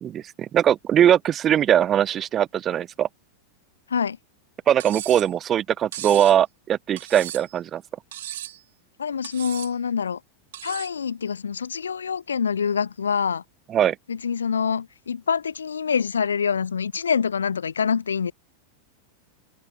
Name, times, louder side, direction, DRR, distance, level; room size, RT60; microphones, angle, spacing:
voice 1, 0.0-3.1 4.7-7.8 13.7-14.0, right 10 dB, 25° right, 0.3 m, -21 dB
Cutlery silverware, 4.8-5.3 5.9-6.4 7.0-7.6 8.1-8.6 9.2-9.7 10.5-11.0, right 13 dB, 55° right, 1.6 m, -36 dB
voice 2, 9.0-10.2 10.6-13.4 14.1-18.3, left 6 dB, 70° left, 2.0 m, -25 dB
figure-of-eight pair, 90°, 0 cm